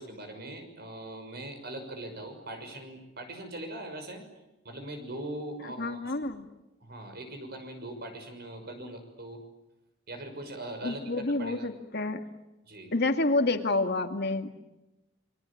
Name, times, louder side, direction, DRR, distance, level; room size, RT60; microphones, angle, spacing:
voice 1, 0.0-4.3 4.6-6.1 6.8-9.4 10.1-11.0 11.4-11.7 12.6-12.9, right 1 dB, 55° right, 6 dB, 6.2 m, -41 dB
voice 2, 5.8-6.5 10.8-12.2 12.9-14.5, left 2 dB, 55° left, 6 dB, 2.1 m, -28 dB
28.5 x 23.0 x 8.8 m, 0.99 s
head